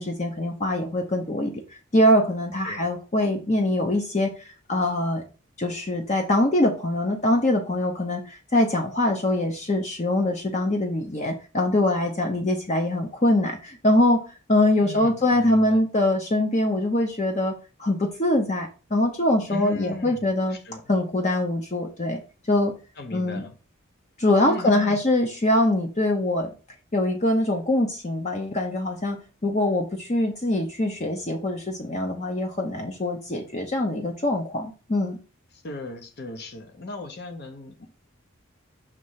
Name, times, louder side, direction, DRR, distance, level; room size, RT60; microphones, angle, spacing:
voice 1, 0.0-1.6 1.9-5.2 5.6-14.2 14.5-17.5 17.8-20.6 20.9-22.2 22.5-22.7 23.1-23.5 24.2-26.5 26.9-35.2, left 1 dB, 35° left, 0.7 m, -23 dB
voice 2, 14.8-15.8 19.5-20.2 20.5-20.8 23.0-23.5 24.4-25.0 35.5-37.9, left 2 dB, 55° left, 1.0 m, -37 dB
6.6 x 3.2 x 5.6 m
head